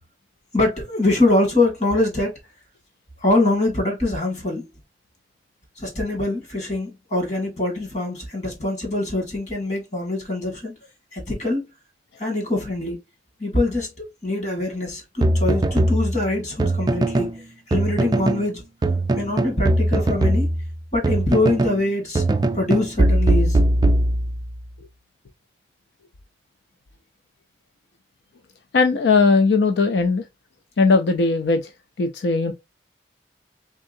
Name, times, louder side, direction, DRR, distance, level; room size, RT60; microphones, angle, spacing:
voice 1, 0.5-2.3 3.2-4.7 5.8-10.7 11.1-11.7 12.2-13.0 13.4-17.3 17.7-18.6 19.2-20.5 20.9-22.3 22.5-23.6, left 2 dB, 40° left, 2.0 m, -23 dB
sound 1, 15.2-17.4 17.7-18.5 18.8-21.8 22.2-24.6, right 1 dB, 25° right, 0.3 m, -20 dB
voice 2, 28.7-30.2 30.8-31.7 32.0-32.5, left 4 dB, 80° left, 0.4 m, -18 dB
3.6 x 3.6 x 2.6 m
head